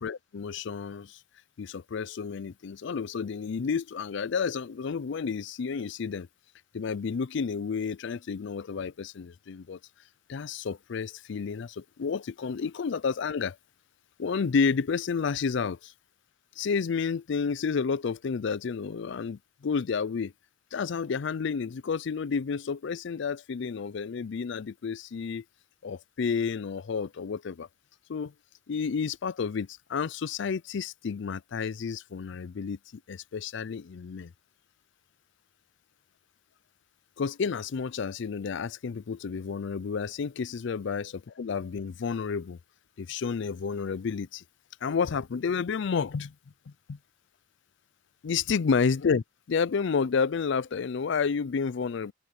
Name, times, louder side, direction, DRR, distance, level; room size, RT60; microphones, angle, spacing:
voice 1, 0.0-1.2 1.6-6.3 6.7-9.8 10.3-13.6 14.2-15.9 16.6-20.3 20.7-25.4 25.8-27.7 28.1-28.3 28.7-34.3 37.2-41.1 41.4-42.6 43.0-44.4 44.8-46.3 46.7-47.0 48.2-52.1, left 5 dB, 65° left, 0.4 m, -30 dB
open air
head